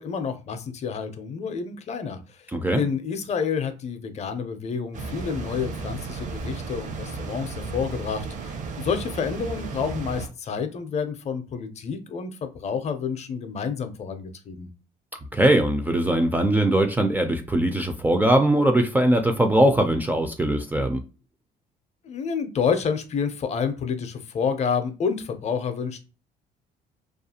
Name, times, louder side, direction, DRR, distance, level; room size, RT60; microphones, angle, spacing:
voice 1, 0.0-2.2 2.7-14.7 22.0-26.0, left 6 dB, 40° left, 9 dB, 0.5 m, -29 dB
voice 2, 2.5-2.9 15.3-21.0, right 1 dB, 10° right, 6 dB, 0.3 m, -21 dB
sound 1, 4.9-10.3, right 4 dB, 50° right, 0.6 m, -34 dB
2.4 x 2.3 x 2.7 m, 0.33 s
cardioid pair, 110°, 17 cm